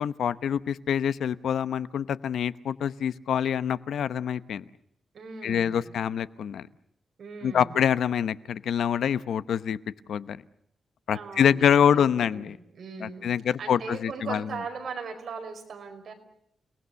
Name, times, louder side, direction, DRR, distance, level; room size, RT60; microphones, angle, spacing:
voice 1, 0.0-4.6 5.4-6.7 7.4-9.8 10.1-10.4 11.1-12.6 13.0-14.5, left 8 dB, 85° left, 15 dB, 0.9 m, -25 dB
voice 2, 5.1-5.9 7.2-8.0 11.1-16.1, right 5 dB, 60° right, 4 dB, 5.0 m, -39 dB
29.5 x 19.5 x 7.0 m, 0.75 s
wide cardioid pair, 140°, 0 cm